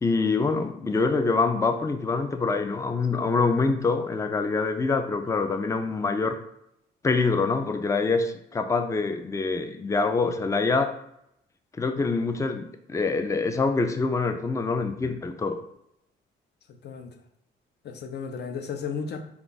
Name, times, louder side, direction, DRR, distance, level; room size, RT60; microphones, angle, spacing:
voice 1, 0.0-6.4 7.0-10.9 11.8-15.6, left 4 dB, 15° left, 7 dB, 0.4 m, -25 dB
voice 2, 16.7-17.1 17.8-19.2, left 6 dB, 55° left, 6 dB, 0.7 m, -34 dB
4.5 x 2.4 x 4.0 m, 0.77 s
cardioid pair, 90°, 20 cm